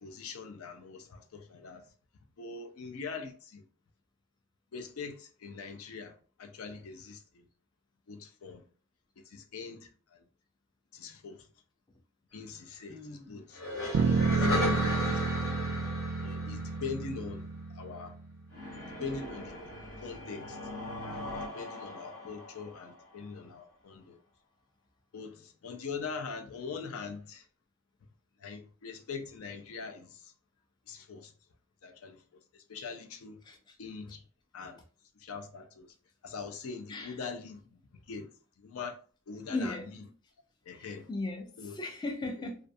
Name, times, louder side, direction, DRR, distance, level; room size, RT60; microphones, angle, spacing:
voice 1, 0.0-1.8 2.4-3.6 4.7-6.1 6.4-7.5 8.1-8.6 9.2-10.2 10.9-11.5 12.3-13.6 14.0-15.0 15.3-15.4 16.2-17.4 17.7-18.2 19.0-19.5 20.0-20.6 21.0-21.3 21.5-24.2 25.1-27.4 28.4-30.3 30.9-31.3 31.8-32.2 32.5-33.4 33.8-34.2 34.5-34.8 35.2-35.9 36.2-38.3 38.6-39.0 39.3-40.0 40.7-41.1 41.6-41.8, left 5 dB, 80° left, 0.5 m, -42 dB
voice 2, 12.9-13.4 14.7-15.2 33.4-33.8 36.9-37.2 39.5-39.9 40.7-42.6, left 2 dB, 20° left, 0.3 m, -38 dB
sound 1, 13.5-17.2 18.5-23.2, left 1 dB, 65° left, 0.9 m, -36 dB
sound 2, 13.9-18.3, right 5 dB, 90° right, 0.3 m, -30 dB
2.4 x 2.3 x 2.5 m
head